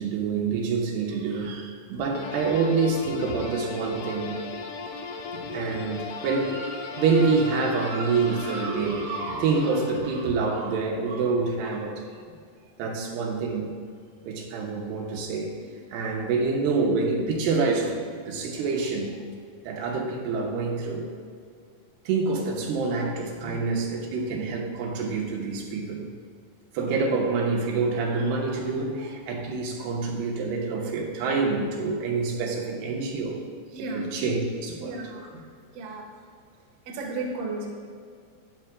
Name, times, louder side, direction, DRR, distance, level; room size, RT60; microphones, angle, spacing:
voice 1, 0.0-4.4 5.5-12.0 12.8-13.7 14.3-19.2 19.7-21.1 22.1-26.1 26.7-33.4 33.9-35.0, right 4 dB, 85° right, -1 dB, 3.1 m, -27 dB
sound 1, 2.1-10.5, left 4 dB, 85° left, 1.7 m, -37 dB
voice 2, 5.3-5.8 9.3-9.4 23.3-23.7 33.7-34.1 34.7-35.3 35.7-36.1 36.8-37.7, right 2 dB, 60° right, -1 dB, 1.7 m, -35 dB
12.0 x 9.6 x 2.3 m, 2.2 s
omnidirectional pair, 4.6 m